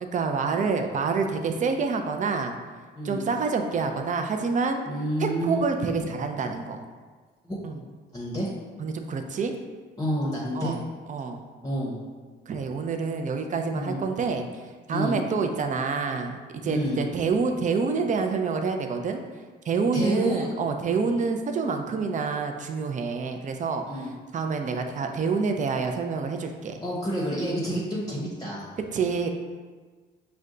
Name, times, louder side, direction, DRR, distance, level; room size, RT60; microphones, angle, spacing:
voice 1, 0.1-2.6 3.0-4.8 5.2-6.8 7.6-7.8 8.8-9.6 10.5-10.8 11.1-11.4 12.5-14.5 14.9-19.2 19.7-23.8 24.3-26.8 28.9-29.3, right 4 dB, 40° right, 5 dB, 0.5 m, -27 dB
voice 2, 3.0-3.3 4.9-5.6 5.9-6.0 7.4-7.6 8.1-8.5 10.0-10.7 11.6-12.0 13.7-14.0 14.9-15.2 16.6-17.0 19.9-20.6 21.0-21.2 23.9-24.1 26.8-28.7, equal, 20° left, -5 dB, 0.8 m, -29 dB
5.0 x 2.2 x 3.7 m, 1.4 s
cardioid pair, 90°, 20 cm